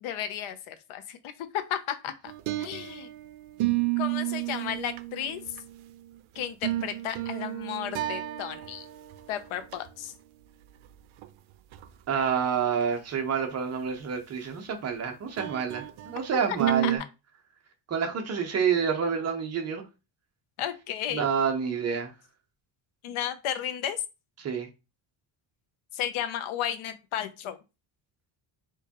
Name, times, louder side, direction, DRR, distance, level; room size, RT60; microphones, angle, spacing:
voice 1, 0.0-2.1 2.6-3.1 4.0-5.6 6.3-8.8 9.3-10.1 16.8-16.9 20.6-21.3 23.0-24.0 25.9-27.6, left 10 dB, 90° left, 0.7 m, -33 dB
sound 1, 2.3-3.2 3.6-5.8 6.4-8.8 9.1-9.2 9.6-9.7 11.2-11.3 11.7-11.8 15.4-16.1 16.6-17.0, right 15 dB, 85° right, 0.5 m, -31 dB
voice 2, 12.1-17.0 17.9-19.8 21.1-22.1 24.4-24.7, right 6 dB, 30° right, 0.7 m, -28 dB
4.6 x 2.3 x 2.8 m
cardioid pair, 165°, 48 cm